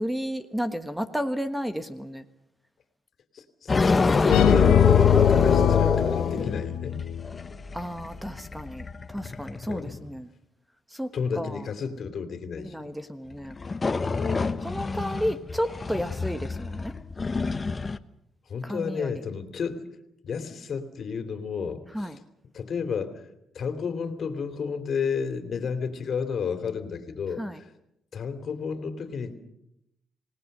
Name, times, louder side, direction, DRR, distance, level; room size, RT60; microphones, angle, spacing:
voice 1, 0.0-2.2 7.7-10.3 10.9-11.1 11.4-11.7 12.6-13.6 14.6-16.9 18.6-19.1 21.9-22.2 27.4-27.6, equal, 5° right, 9 dB, 1.4 m, -32 dB
voice 2, 3.3-7.0 9.7-10.1 11.1-12.9 14.1-14.6 18.5-19.8 20.2-22.1 22.5-23.2 23.5-27.6 28.1-29.3, left 6 dB, 55° left, 9 dB, 3.0 m, -32 dB
sound 1, 3.7-10.0 13.5-18.0, left 3 dB, 30° left, 1.0 m, -27 dB
sound 2, 4.3-7.3, left 10 dB, 85° left, 1.5 m, -21 dB
27.0 x 18.5 x 6.7 m, 0.81 s
cardioid pair, 90°, 0 cm